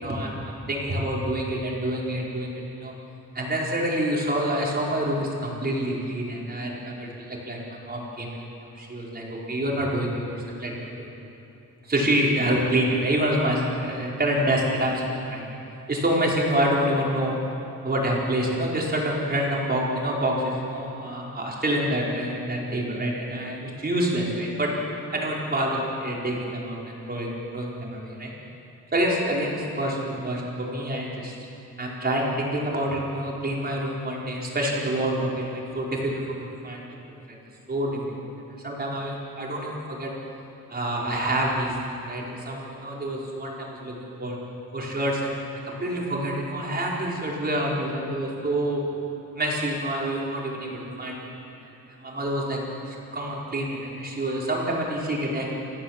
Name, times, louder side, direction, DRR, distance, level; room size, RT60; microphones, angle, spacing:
voice 1, 0.0-2.9 3.3-8.3 8.8-11.1 11.8-15.4 15.9-17.4 17.8-24.7 25.1-28.3 28.9-31.4 31.8-36.8 37.3-37.4 37.7-38.0 38.6-40.1 40.7-41.8 42.1-44.4 44.7-45.4 45.6-48.8 49.3-51.3 52.0-55.6, right 1 dB, 30° right, -3 dB, 4.9 m, -27 dB
29.0 x 15.5 x 7.5 m, 2.9 s
wide cardioid pair, 135°, 32 cm